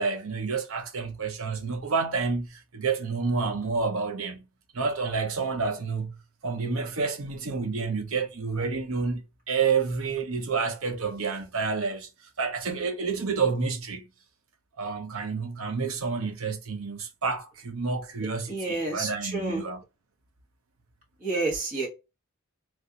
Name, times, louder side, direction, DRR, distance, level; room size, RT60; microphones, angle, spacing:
voice 1, 0.0-4.5 4.7-12.1 12.4-14.1 14.8-19.8, right 4 dB, 75° right, 0.7 m, -29 dB
voice 2, 18.5-19.6 21.2-21.9, right 3 dB, 35° right, 1.3 m, -29 dB
3.2 x 2.5 x 2.9 m
head